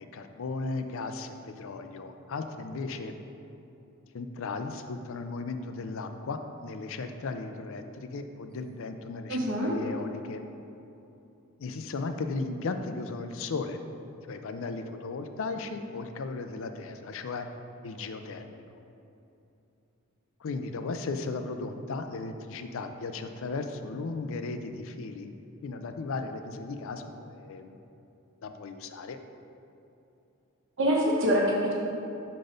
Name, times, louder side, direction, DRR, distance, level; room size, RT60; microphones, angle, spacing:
voice 1, 0.0-3.2 4.1-10.4 11.6-13.8 14.3-17.5 17.8-18.8 20.4-25.3 25.6-27.7 28.4-29.2, left 3 dB, 60° left, 7 dB, 0.4 m, -36 dB
voice 2, 9.3-9.8 30.8-31.7, equal, 60° right, -2 dB, 1.2 m, -25 dB
6.5 x 4.0 x 5.0 m, 2.8 s
head